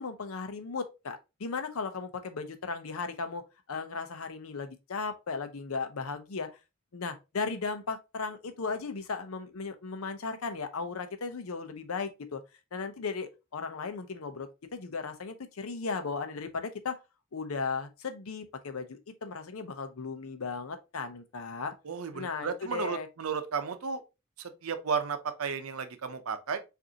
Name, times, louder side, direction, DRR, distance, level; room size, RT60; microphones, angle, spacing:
voice 1, 0.0-3.4 3.7-6.5 6.9-12.4 12.7-17.0 17.3-21.7 22.1-23.1, left 4 dB, 85° left, 0.7 m, -36 dB
voice 2, 21.8-24.0 24.4-26.6, right 6 dB, 85° right, 0.6 m, -33 dB
5.0 x 2.6 x 2.7 m
head